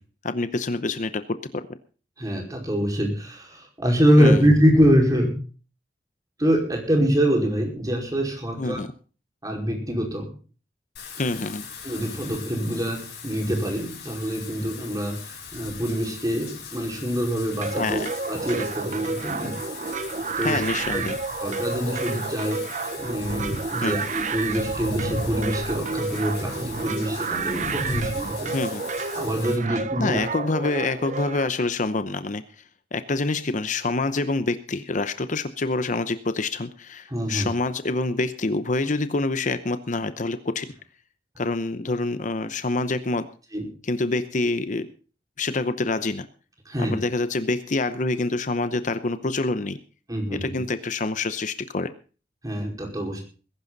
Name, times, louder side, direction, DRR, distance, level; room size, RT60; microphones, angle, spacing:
voice 1, 0.2-1.6 4.2-4.4 8.6-8.9 11.2-11.7 17.7-18.1 20.4-21.2 23.8-24.0 28.5-28.9 29.7-32.4 32.9-40.7 41.4-43.3 43.8-44.9 45.4-46.3 46.8-49.8 50.3-51.9, left 3 dB, 45° left, 11 dB, 0.8 m, -26 dB
voice 2, 2.2-5.3 6.4-8.8 9.4-10.3 11.8-18.0 18.3-19.6 20.4-20.6 20.9-21.1 21.4-22.6 23.0-28.5 29.2-30.2 37.1-37.5 43.5-43.7 46.6-47.0 50.1-50.6 52.4-53.2, equal, 20° right, 1 dB, 5.0 m, -24 dB
Wind / Rain, 11.0-29.6, left 3 dB, 70° left, 6.1 m, -38 dB
sound 1, 17.6-31.5, right 4 dB, 45° right, 1.0 m, -30 dB
21.0 x 11.5 x 4.0 m, 0.38 s
head